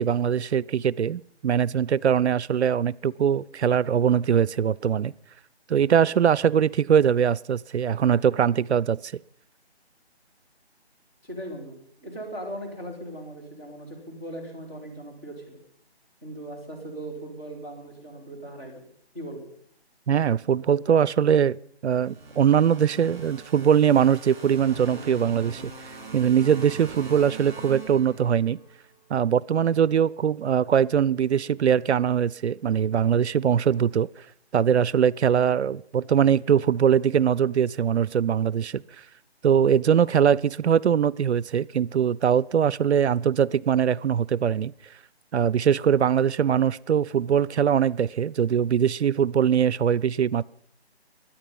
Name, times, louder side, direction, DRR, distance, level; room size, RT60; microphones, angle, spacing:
voice 1, 0.0-5.1 5.7-9.1 20.1-21.6 21.8-28.6 29.1-34.1 34.5-38.8 39.4-44.7 45.3-50.4, right 8 dB, 85° right, 0.5 m, -22 dB
voice 2, 11.2-15.6 16.2-18.9 19.1-19.5, right 1 dB, 15° left, 2.8 m, -38 dB
sound 1, 22.0-28.7, right 3 dB, 45° right, 4.3 m, -41 dB
23.0 x 8.9 x 5.4 m
figure-of-eight pair, 170°, 33 cm